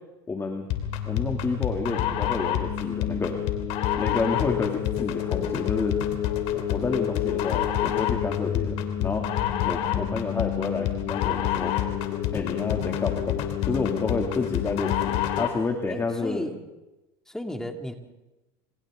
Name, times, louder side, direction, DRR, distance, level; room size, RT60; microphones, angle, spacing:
voice 1, 0.3-0.7 1.0-3.4 4.0-6.0 6.5-9.3 9.6-11.7 12.3-16.5, left 4 dB, 20° left, 3 dB, 2.7 m, -30 dB
sound 1, 0.7-15.6, left 10 dB, 60° left, 3.1 m, -27 dB
voice 2, 15.9-16.6 17.3-17.9, left 1 dB, 5° left, 4 dB, 2.6 m, -34 dB
28.5 x 27.5 x 3.8 m, 1.0 s
supercardioid pair, 100°, 12 cm